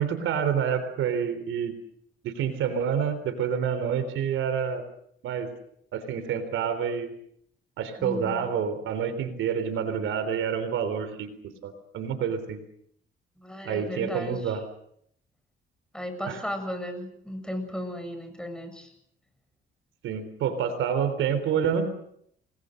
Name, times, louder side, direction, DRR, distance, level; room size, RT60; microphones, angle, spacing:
voice 1, 0.0-1.8 2.2-4.8 5.2-5.5 5.9-7.1 7.8-11.3 11.6-12.6 13.6-14.6 16.2-16.4 20.0-21.9, right 7 dB, 85° right, 10 dB, 3.8 m, -28 dB
voice 2, 8.0-8.5 13.4-14.6 15.9-18.9, equal, 5° left, 7 dB, 7.5 m, -35 dB
29.0 x 20.5 x 6.6 m, 0.70 s
cardioid pair, 90°, 20 cm